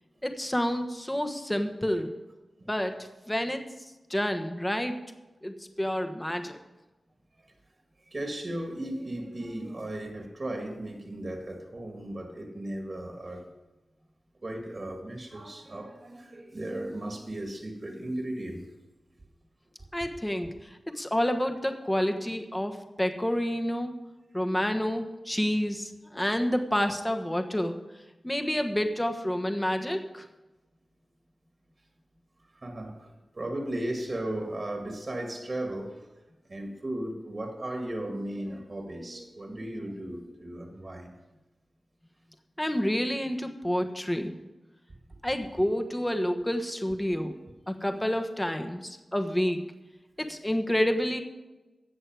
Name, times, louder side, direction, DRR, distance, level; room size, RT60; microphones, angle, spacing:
voice 1, 0.2-2.1 2.7-2.9 3.3-3.6 4.1-5.0 5.4-6.6 19.9-20.7 20.9-23.9 24.3-27.8 28.2-30.2 42.6-44.3 45.2-47.3 47.7-49.7 50.2-51.2, equal, 10° left, 6 dB, 1.2 m, -29 dB
voice 2, 8.1-13.5 14.4-18.6 32.5-36.0 36.5-41.1 47.1-47.3, right 1 dB, 45° right, 3 dB, 1.9 m, -36 dB
16.5 x 6.5 x 4.8 m, 1.1 s
cardioid pair, 55°, 0 cm